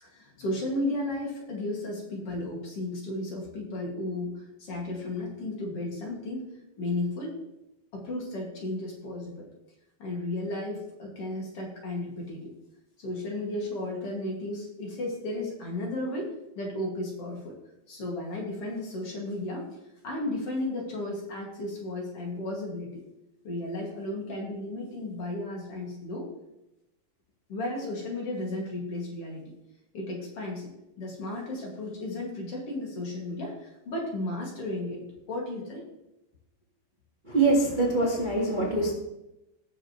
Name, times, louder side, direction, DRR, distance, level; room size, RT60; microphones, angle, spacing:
voice 1, 0.0-6.5 6.8-7.4 7.9-9.5 10.0-12.5 13.0-17.5 17.9-19.7 20.0-23.0 23.4-26.3 27.5-29.5 29.9-30.7 31.0-35.8, left 1 dB, 45° left, -2 dB, 2.8 m, -34 dB
voice 2, 37.3-38.9, right 2 dB, 45° right, -3 dB, 0.6 m, -24 dB
19.5 x 6.7 x 3.1 m, 0.92 s
omnidirectional pair, 4.2 m